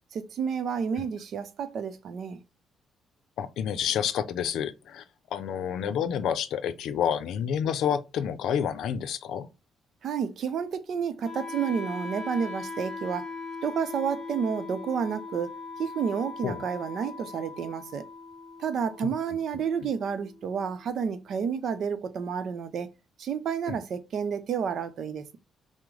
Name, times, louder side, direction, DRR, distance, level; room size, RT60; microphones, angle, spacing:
voice 1, 0.1-2.4 10.0-13.3 13.6-18.0 18.6-22.9 23.2-25.4, right 7 dB, 65° right, 0.6 m, -30 dB
voice 2, 3.4-5.0 5.3-9.5 16.4-16.6 19.0-19.1 23.7-23.8, left 8 dB, 80° left, 0.5 m, -29 dB
Wind instrument woodwind instrument, 11.2-21.2, left 4 dB, 15° right, 2.0 m, -40 dB
6.0 x 2.1 x 3.2 m
cardioid pair, 90°, 0 cm